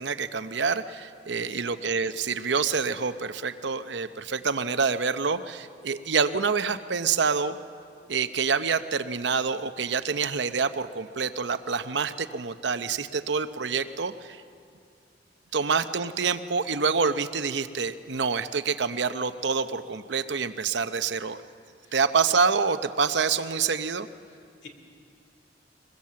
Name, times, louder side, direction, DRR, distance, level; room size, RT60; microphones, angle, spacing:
voice 1, 0.0-7.6 8.1-14.4 15.5-21.4 21.9-24.1, right 5 dB, 70° right, 11 dB, 0.7 m, -27 dB
voice 2, 1.4-1.7 21.8-21.9 24.3-24.7, left 3 dB, 75° left, 4 dB, 2.5 m, -50 dB
22.5 x 21.0 x 7.5 m, 2.4 s
head